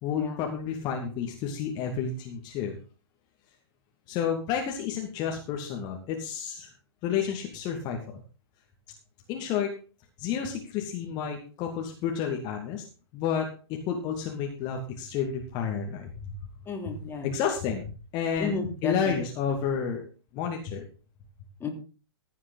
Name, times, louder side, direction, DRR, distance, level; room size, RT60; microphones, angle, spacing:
voice 1, 0.0-2.7 4.1-6.7 7.0-8.0 9.3-9.7 10.2-12.8 13.1-16.4 17.2-18.5 18.8-20.0 20.3-20.8, left 7 dB, 35° left, 2.5 m, -30 dB
voice 2, 16.6-17.3 18.4-19.2 21.6-21.7, left 4 dB, 15° left, 3.3 m, -33 dB
15.5 x 9.2 x 4.0 m
figure-of-eight pair, 110°, 14 cm